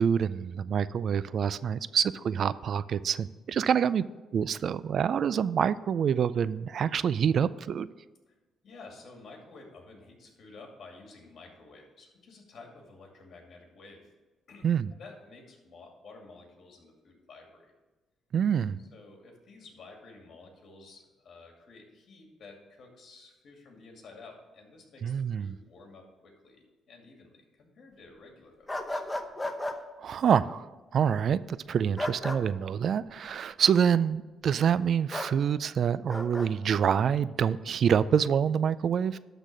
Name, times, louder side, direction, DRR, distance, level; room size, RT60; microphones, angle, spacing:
voice 1, 0.0-4.0 4.3-7.9 14.6-14.9 18.3-18.8 25.0-25.6 30.0-30.6 30.9-39.2, right 8 dB, 60° right, 17 dB, 0.3 m, -26 dB
voice 2, 8.6-14.1 14.5-14.7 15.0-17.7 18.8-25.1 25.4-29.0, left 3 dB, 60° left, 1 dB, 2.4 m, -51 dB
sound 1, 28.7-29.8 32.0-32.4 35.1-35.3 36.1-36.5, left 1 dB, 15° left, 0.8 m, -33 dB
12.0 x 4.0 x 6.1 m, 1.2 s
cardioid pair, 90°, 0 cm